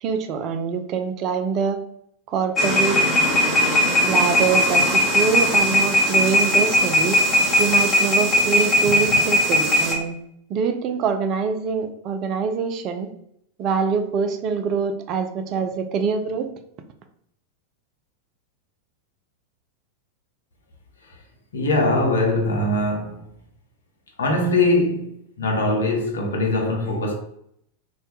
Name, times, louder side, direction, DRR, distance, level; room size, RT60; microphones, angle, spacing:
voice 1, 0.0-1.8 2.3-3.0 4.0-7.2 7.6-10.2 10.5-13.1 13.6-16.5, right 6 dB, 35° right, 0.3 m, -24 dB
sound 1, 2.6-9.9, equal, 15° left, 0.8 m, -19 dB
voice 2, 21.5-23.2 24.2-27.1, left 2 dB, 65° left, 0.6 m, -21 dB
2.2 x 2.1 x 3.0 m
figure-of-eight pair, 90°, 0 cm